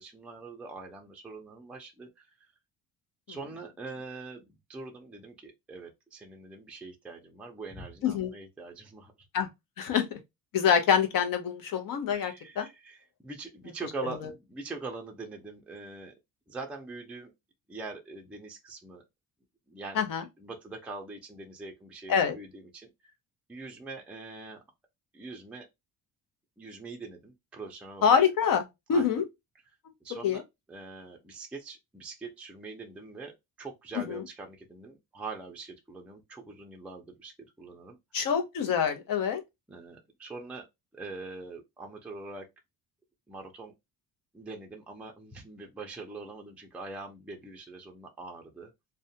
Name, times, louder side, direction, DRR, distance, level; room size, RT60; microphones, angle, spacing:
voice 1, 0.0-2.3 3.3-4.4 4.7-9.1 12.1-16.1 16.5-17.3 17.7-19.0 19.7-20.1 20.4-23.1 23.5-24.6 25.1-25.7 26.6-28.2 28.9-29.1 30.0-30.4 30.7-33.3 33.6-37.3 37.6-38.0 39.7-40.7 40.9-42.5 43.3-43.7 44.3-48.7, right 3 dB, 5° right, 0.4 m, -43 dB
voice 2, 9.8-10.2 10.5-12.7 19.9-20.2 22.1-22.4 28.0-28.6 28.9-29.2 30.2-30.4 34.1-34.2 38.1-39.4, left 7 dB, 60° left, 0.7 m, -25 dB
2.4 x 2.2 x 2.7 m
cardioid pair, 130°, 37 cm